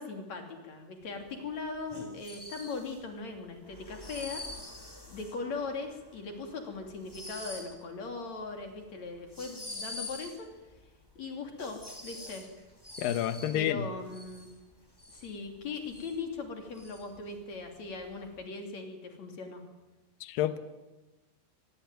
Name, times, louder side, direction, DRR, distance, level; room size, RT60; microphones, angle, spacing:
voice 1, 0.0-4.4 5.1-10.5 11.2-12.4 13.5-14.5 15.1-19.6, left 4 dB, 40° left, 4 dB, 3.7 m, -39 dB
sound 1, 1.2-18.4, left 2 dB, 5° left, 2.4 m, -46 dB
voice 2, 13.0-13.9 20.2-20.6, left 11 dB, 80° left, 11 dB, 2.0 m, -29 dB
24.0 x 21.5 x 9.3 m, 1.1 s
omnidirectional pair, 5.7 m